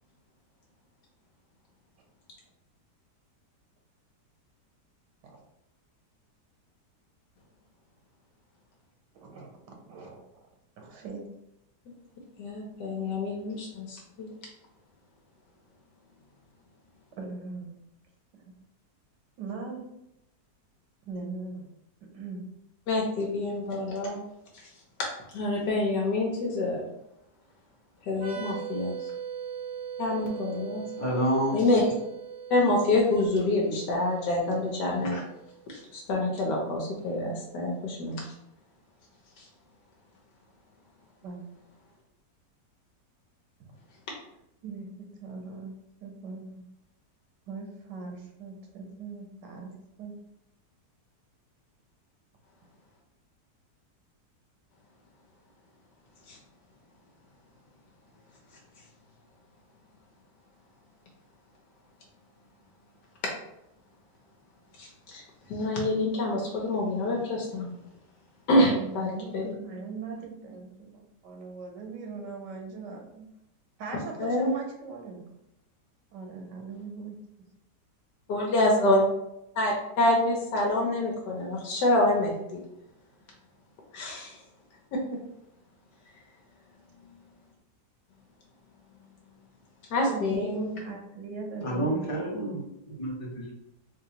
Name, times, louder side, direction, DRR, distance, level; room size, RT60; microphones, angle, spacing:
voice 1, 9.1-10.2 10.8-11.3 17.2-17.7 18.3-18.5 19.4-19.9 21.0-21.7 22.1-22.4 28.3-28.6 41.2-41.4 43.6-43.8 44.6-45.7 46.0-46.6 47.5-50.1 68.8-73.3 73.8-75.2 76.1-77.1 90.0-92.3, right 4 dB, 85° right, 2 dB, 1.4 m, -40 dB
voice 2, 12.4-14.3 22.9-24.2 25.3-26.8 28.0-28.9 30.0-30.9 31.5-31.8 32.5-35.2 35.7-38.2 56.3-56.4 64.8-65.2 65.5-67.7 68.5-69.4 74.2-74.5 78.3-79.0 79.6-82.6 83.9-84.4 84.9-85.2 89.9-90.7, left 2 dB, 80° left, -2 dB, 1.4 m, -26 dB
sound 1, 28.1-35.6, right 7 dB, 45° right, 0.8 m, -40 dB
voice 3, 31.0-31.8 91.6-92.6 93.0-93.5, right 1 dB, 25° left, -5 dB, 1.0 m, -29 dB
3.8 x 2.8 x 2.8 m, 0.83 s
omnidirectional pair, 1.8 m